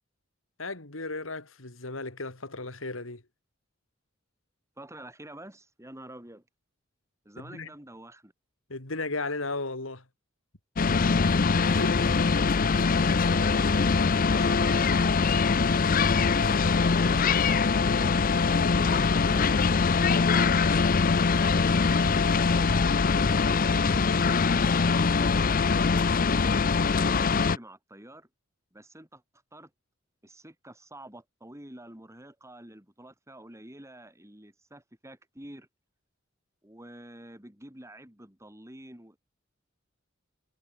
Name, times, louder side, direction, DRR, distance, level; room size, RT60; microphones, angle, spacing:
voice 1, 0.6-3.2 7.4-7.7 8.7-10.0 11.7-12.2, left 3 dB, 80° left, 3.3 m, -35 dB
voice 2, 4.8-6.5 7.3-8.3 13.2-15.6 16.3-19.5 19.9-20.5 21.3-24.5 24.9-25.7 26.6-28.3 28.7-29.2 29.5-29.7 30.2-35.7 36.6-39.2, right 1 dB, 15° right, 5.2 m, -48 dB
sound 1, 10.8-27.6, left 4 dB, 45° left, 0.6 m, -23 dB
head